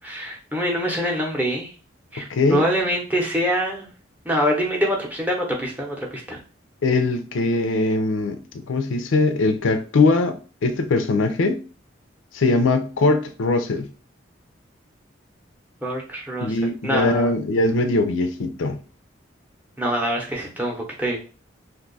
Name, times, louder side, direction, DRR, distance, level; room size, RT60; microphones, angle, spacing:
voice 1, 0.0-1.7 2.1-3.9 4.2-6.4 15.8-16.5 16.8-17.3 19.8-21.2, equal, 10° right, 0.7 m, -25 dB
voice 2, 2.2-2.6 6.8-11.6 12.3-13.9 16.4-18.8, left 3 dB, 80° left, 0.4 m, -21 dB
2.6 x 2.3 x 3.9 m
head